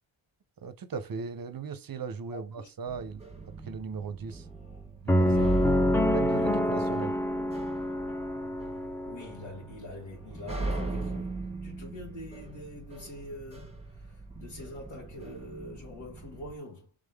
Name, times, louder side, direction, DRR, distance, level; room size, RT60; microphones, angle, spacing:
voice 1, 0.6-3.2 3.6-4.5 5.0-5.5 6.0-7.1, right 5 dB, 45° right, 0.6 m, -37 dB
voice 2, 2.3-2.7 5.1-5.7 6.3-6.8 9.1-16.9, left 2 dB, 70° left, 1.8 m, -45 dB
sound 1, 2.9-16.6, right 2 dB, 15° right, 1.1 m, -38 dB
sound 2, 5.1-9.2, left 1 dB, 5° left, 0.6 m, -26 dB
3.7 x 3.6 x 3.4 m
wide cardioid pair, 75°, 49 cm